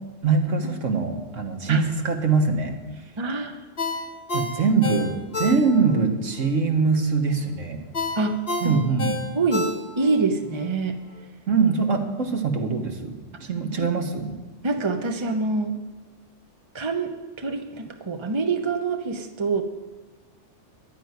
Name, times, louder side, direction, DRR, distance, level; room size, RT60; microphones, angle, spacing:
voice 1, 0.2-2.8 4.3-7.9 8.6-9.2 11.5-14.4, right 4 dB, 85° right, 4 dB, 1.8 m, -23 dB
voice 2, 3.2-3.6 5.5-5.6 8.2-8.8 9.3-11.0 13.8-13.9 14.6-15.8 16.7-17.1 17.4-19.6, right 3 dB, 25° right, 6 dB, 1.0 m, -25 dB
Ringtone, 3.8-6.0 6.4-6.5 7.9-10.2 10.6-10.7, left 3 dB, 50° left, 1.9 m, -29 dB
11.5 x 9.2 x 9.5 m, 1.3 s
omnidirectional pair, 1.3 m